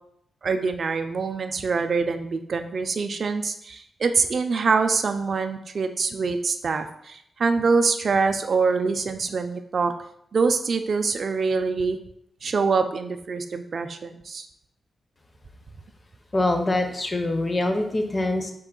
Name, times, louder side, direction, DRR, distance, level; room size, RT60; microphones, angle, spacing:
voice 1, 0.4-9.9 10.3-12.0 12.4-14.5, right 4 dB, 50° right, 7 dB, 0.3 m, -24 dB
voice 2, 16.3-18.5, left 2 dB, 25° left, 5 dB, 0.5 m, -24 dB
4.4 x 2.8 x 3.8 m, 0.73 s
wide cardioid pair, 135°, 0 cm